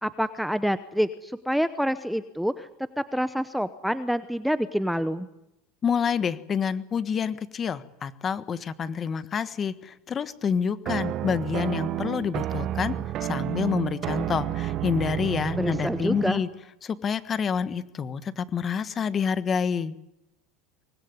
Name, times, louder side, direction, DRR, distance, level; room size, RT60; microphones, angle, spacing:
voice 1, 0.0-2.7 3.0-5.3 15.6-16.4, equal, ahead, 12 dB, 0.8 m, -27 dB
voice 2, 5.8-13.0 13.2-16.5 16.8-20.0, left 6 dB, 25° left, 14 dB, 1.4 m, -28 dB
sound 1, 10.8-16.4, right 12 dB, 40° right, 1.0 m, -30 dB
24.5 x 20.0 x 9.7 m, 0.88 s
supercardioid pair, 145°, 0 cm